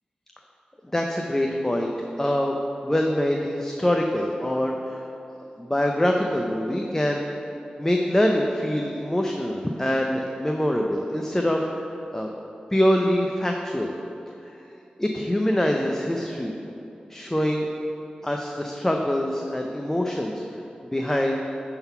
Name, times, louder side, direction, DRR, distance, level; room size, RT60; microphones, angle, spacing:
voice 1, 0.9-1.9 2.2-2.6 2.8-5.1 5.6-7.5 7.8-12.3 12.7-13.9 14.4-14.5 15.0-16.6 17.1-17.7 18.2-20.6 20.9-21.4, left 1 dB, 15° left, 1 dB, 0.6 m, -24 dB
10.5 x 3.9 x 5.7 m, 2.8 s
cardioid pair, 55°, 3 cm